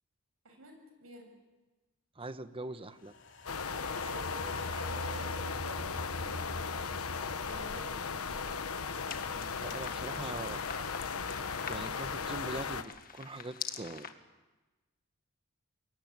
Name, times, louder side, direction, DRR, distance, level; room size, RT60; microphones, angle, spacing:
voice 1, 0.4-1.3 4.0-6.7 7.4-8.6, equal, 75° right, 4 dB, 7.4 m, -49 dB
voice 2, 2.1-3.1 9.3-10.6 11.7-14.1, right 2 dB, 25° right, 11 dB, 1.1 m, -42 dB
sound 1, 3.0-9.4 9.7-9.8, left 1 dB, 60° left, 3.4 m, -44 dB
sound 2, 3.5-12.8, left 5 dB, 90° left, 1.2 m, -37 dB
sound 3, 9.1-14.1, left 7 dB, 45° left, 1.7 m, -45 dB
26.0 x 22.0 x 9.6 m, 1.2 s
head